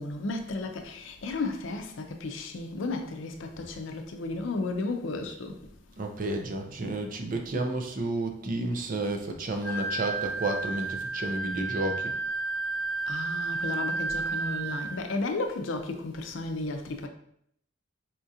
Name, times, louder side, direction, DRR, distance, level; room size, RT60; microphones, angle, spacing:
voice 1, 0.0-5.7 13.1-17.1, left 3 dB, 70° left, 0.5 m, -33 dB
voice 2, 6.0-12.1, right 2 dB, 45° right, 0.4 m, -31 dB
Wind instrument woodwind instrument, 9.6-15.1, right 3 dB, 10° left, 0.7 m, -32 dB
4.2 x 2.4 x 2.7 m
head